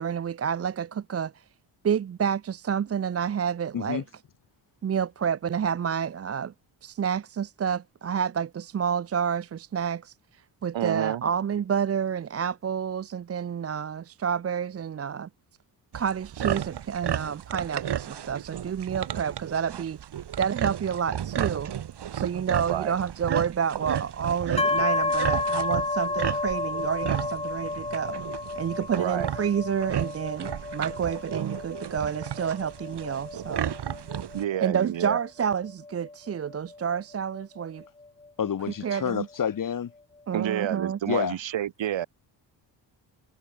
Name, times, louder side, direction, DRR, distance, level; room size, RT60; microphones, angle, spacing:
voice 1, 0.0-1.3 1.8-4.0 4.8-6.5 6.8-10.1 10.6-15.3 15.9-20.0 20.4-21.7 22.1-28.2 28.6-33.8 34.6-37.8 38.8-39.3 40.3-41.0, right 7 dB, 35° right, 0.6 m, -29 dB
voice 2, 3.7-4.0 38.4-39.9 41.1-41.4, left 8 dB, 45° left, 1.6 m, -28 dB
voice 3, 10.7-11.2 22.7-22.9 28.9-29.3 34.3-35.2 40.3-42.1, right 11 dB, 80° right, 3.1 m, -29 dB
sound 1, 15.9-34.4, right 10 dB, 60° right, 2.6 m, -33 dB
sound 2, 24.6-38.3, left 3 dB, 15° left, 1.2 m, -32 dB
cardioid pair, 135°, 45 cm